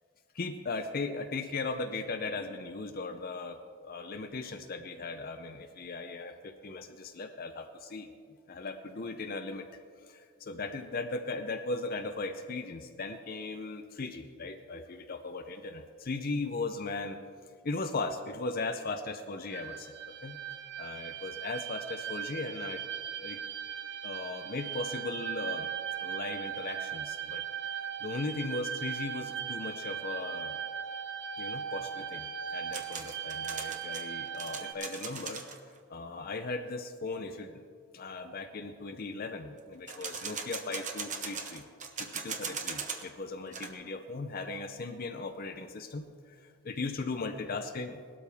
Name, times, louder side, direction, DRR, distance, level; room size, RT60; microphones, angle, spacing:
voice 1, 0.3-8.1 8.5-9.7 10.0-17.2 17.6-20.4 20.8-22.8 23.2-23.4 24.0-25.7 26.0-27.4 28.0-30.6 31.4-35.4 35.9-37.6 37.9-41.6 42.0-48.0, left 3 dB, 45° left, 6 dB, 0.6 m, -38 dB
sound 1, 19.5-34.7, right 8 dB, 55° right, 1.2 m, -38 dB
sound 2, 32.7-35.6 39.9-43.1 43.4-43.7, right 6 dB, 35° right, 1.0 m, -39 dB
18.0 x 12.5 x 3.5 m, 2.1 s
head